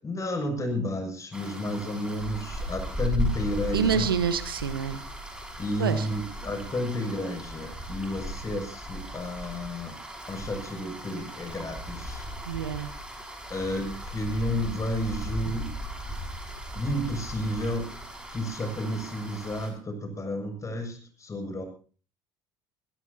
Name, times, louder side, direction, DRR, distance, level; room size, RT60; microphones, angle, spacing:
voice 1, 0.0-4.1 5.6-10.0 10.3-12.2 13.5-15.7 16.7-17.9 18.3-21.7, left 1 dB, 25° left, 5 dB, 7.5 m, -31 dB
sound 1, 1.3-19.7, equal, 5° right, 6.0 m, -37 dB
voice 2, 3.7-5.0 5.8-6.1 12.4-12.9, right 7 dB, 85° right, 12 dB, 1.3 m, -27 dB
23.5 x 16.5 x 2.9 m, 0.39 s
hypercardioid pair, 65°, 12 cm